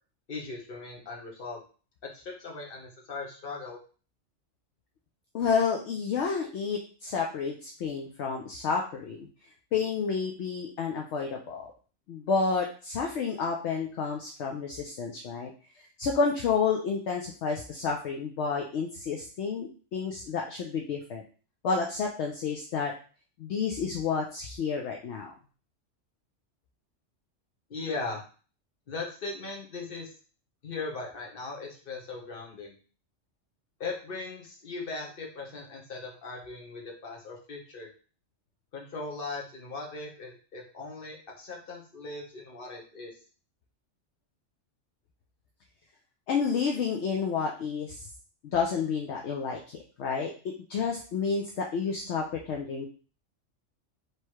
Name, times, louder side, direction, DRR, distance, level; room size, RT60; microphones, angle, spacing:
voice 1, 0.3-1.6 2.0-3.8 27.7-28.2 28.9-30.1 30.6-32.7 33.8-37.9 38.7-43.1, left 3 dB, 45° left, 0 dB, 1.2 m, -39 dB
voice 2, 5.3-9.3 9.7-11.7 12.1-15.5 15.8-21.2 21.6-22.9 23.4-25.3 46.3-48.1 48.4-52.9, left 5 dB, 70° left, 1 dB, 0.9 m, -30 dB
3.3 x 3.0 x 4.5 m, 0.39 s
omnidirectional pair, 1.3 m